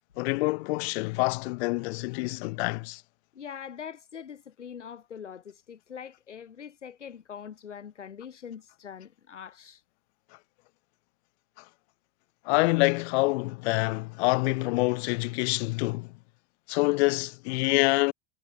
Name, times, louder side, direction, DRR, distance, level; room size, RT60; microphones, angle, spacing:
voice 1, 0.2-3.0 12.4-16.1 16.7-18.1, left 25 dB, 65° left, 4.7 m, -26 dB
voice 2, 3.4-9.8, left 7 dB, 90° left, 3.9 m, -43 dB
hypercardioid pair, 80°, 35 cm